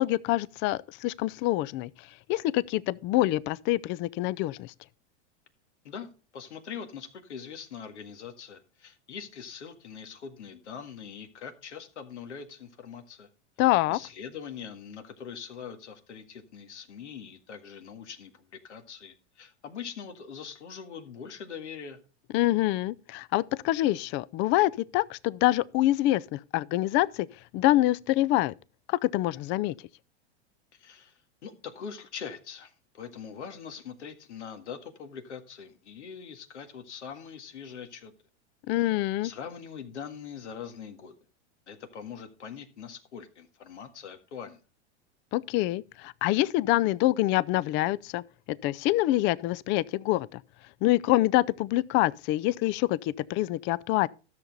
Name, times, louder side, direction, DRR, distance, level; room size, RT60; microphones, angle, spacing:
voice 1, 0.0-1.9 2.3-4.7 13.6-14.0 22.3-27.3 27.5-28.5 28.9-29.7 38.7-39.3 45.3-50.4 50.8-54.1, left 16 dB, 35° left, 0.4 m, -26 dB
voice 2, 5.8-13.3 13.9-22.0 30.7-38.1 38.8-38.9 39.2-41.1 41.7-44.6, left 7 dB, 85° left, 1.8 m, -42 dB
13.0 x 6.8 x 3.9 m
hypercardioid pair, 110°, 34 cm